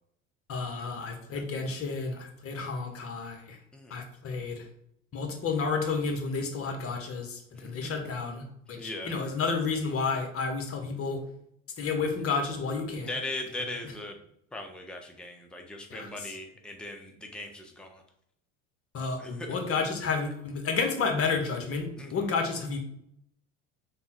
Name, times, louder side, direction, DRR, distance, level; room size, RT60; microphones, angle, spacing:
voice 1, 0.5-3.6 3.9-4.6 5.1-11.2 11.8-13.1 15.9-16.3 18.9-22.8, left 4 dB, 35° left, 3 dB, 1.0 m, -31 dB
voice 2, 8.7-9.1 13.1-14.2 14.5-18.0 19.2-19.5 22.0-22.3, left 2 dB, ahead, 3 dB, 0.5 m, -39 dB
3.5 x 2.2 x 4.2 m, 0.73 s
hypercardioid pair, 75°, 38 cm